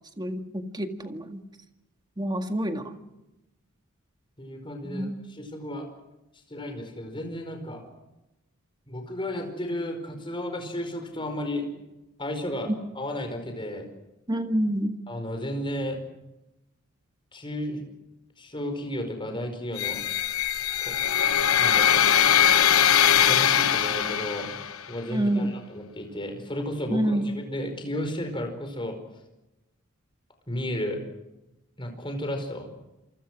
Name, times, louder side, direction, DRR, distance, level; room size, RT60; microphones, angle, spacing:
voice 1, 0.2-1.4 2.2-3.0 4.8-5.1 14.3-15.0 25.1-25.5 26.9-27.3, right 1 dB, 20° right, 6 dB, 1.9 m, -27 dB
voice 2, 4.4-5.9 6.5-7.8 8.9-11.7 12.2-13.9 15.1-16.0 17.3-17.8 18.4-20.0 20.8-21.0 21.6-22.0 23.2-24.6 24.9-29.0 30.5-31.0 31.8-32.7, left 1 dB, 25° left, 5 dB, 5.0 m, -33 dB
sound 1, 19.8-24.8, left 9 dB, 80° left, 1.1 m, -21 dB
28.0 x 24.5 x 6.2 m, 0.96 s
head